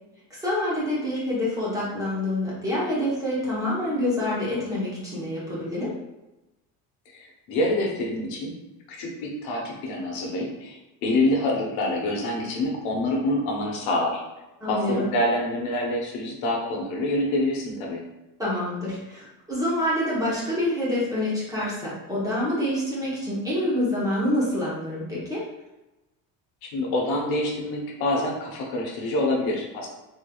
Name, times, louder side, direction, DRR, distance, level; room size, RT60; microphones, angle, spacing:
voice 1, 0.4-5.9 14.6-15.1 18.4-25.4, left 1 dB, 10° right, -8 dB, 0.9 m, -27 dB
voice 2, 7.1-8.5 8.9-14.2 14.6-18.0 26.7-29.9, left 1 dB, 70° left, -1 dB, 0.9 m, -26 dB
3.5 x 3.3 x 2.3 m, 0.99 s
cardioid pair, 170°, 38 cm